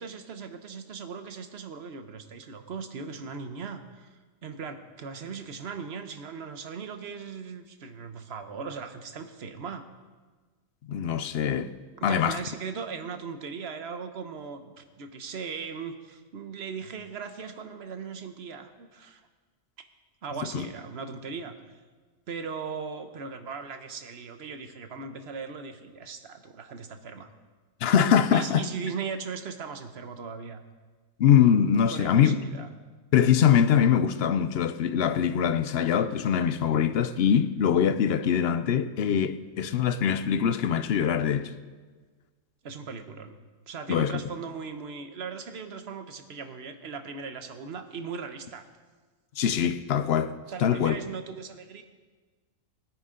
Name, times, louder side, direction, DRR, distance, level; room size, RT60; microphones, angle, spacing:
voice 1, 0.0-9.8 11.9-19.2 20.2-21.5 22.3-27.3 28.3-30.6 31.9-32.7 42.6-43.4 43.7-48.7 50.5-51.8, right 5 dB, 55° right, 1.1 m, -38 dB
voice 2, 10.9-11.7 12.0-12.4 27.8-28.6 31.2-32.4 33.1-41.5 43.9-44.2 49.4-50.3 50.6-51.0, left 8 dB, 60° left, 0.7 m, -23 dB
20.5 x 9.6 x 3.8 m
omnidirectional pair, 1.4 m